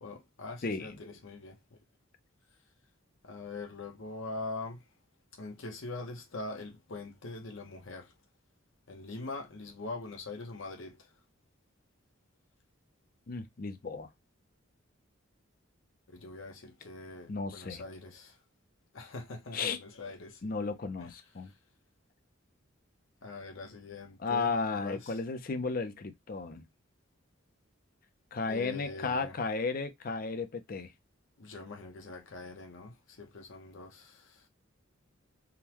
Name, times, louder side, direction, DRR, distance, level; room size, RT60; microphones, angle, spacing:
voice 1, 0.0-1.6 3.2-4.8 5.4-8.1 8.9-11.1 16.1-18.4 18.9-20.5 21.0-21.1 23.2-24.5 24.8-25.2 28.5-29.3 31.4-34.4, left 3 dB, 70° left, 0.9 m, -43 dB
voice 2, 0.6-1.0 13.3-14.1 17.3-17.8 19.5-19.8 20.4-21.5 24.2-26.6 28.3-30.9, left 4 dB, 45° left, 0.5 m, -34 dB
3.6 x 2.2 x 2.8 m
head